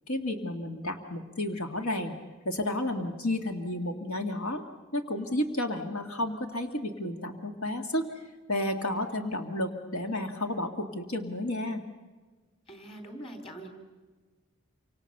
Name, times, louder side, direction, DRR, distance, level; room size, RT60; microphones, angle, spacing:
voice 1, 0.1-2.2 2.4-4.6 4.9-8.1 8.5-11.8, left 1 dB, 90° left, 5 dB, 2.2 m, -31 dB
voice 2, 12.7-13.7, right 1 dB, 25° left, 5 dB, 3.6 m, -43 dB
28.0 x 26.0 x 6.8 m, 1.3 s
head